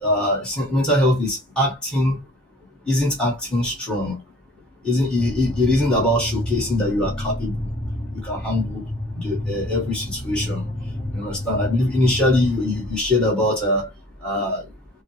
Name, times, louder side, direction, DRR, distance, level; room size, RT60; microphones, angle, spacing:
voice 1, 0.0-2.2 2.9-4.2 4.8-7.6 8.2-8.8 9.2-10.6 11.1-13.9 14.2-14.6, left 1 dB, 5° left, 1.4 m, -22 dB
sound 1, 5.2-13.0, left 1 dB, 30° left, 0.6 m, -29 dB
5.4 x 2.0 x 3.1 m
head